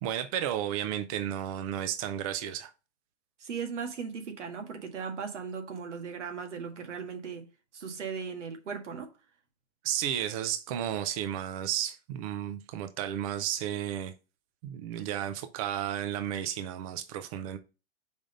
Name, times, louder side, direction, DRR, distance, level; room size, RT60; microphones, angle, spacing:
voice 1, 0.0-2.7 9.8-14.1 14.6-17.6, right 10 dB, 30° right, 0.5 m, -33 dB
voice 2, 3.4-7.5 7.7-9.1, right 6 dB, 80° right, 1.7 m, -37 dB
5.2 x 3.8 x 5.2 m
hypercardioid pair, 140°, 36 cm